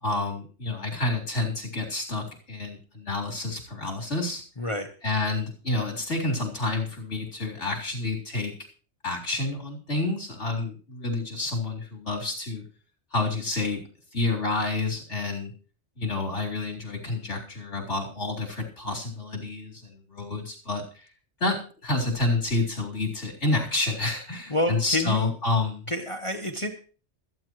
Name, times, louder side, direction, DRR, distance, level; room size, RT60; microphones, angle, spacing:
voice 1, 0.0-4.4 5.0-8.5 9.0-12.6 13.1-13.8 14.1-15.5 16.0-21.1 21.4-25.9, left 2 dB, 75° left, -1 dB, 4.1 m, -29 dB
voice 2, 24.5-25.3 25.9-26.7, left 1 dB, 30° left, 3 dB, 1.1 m, -28 dB
26.5 x 9.1 x 3.1 m, 0.39 s
omnidirectional pair, 1.2 m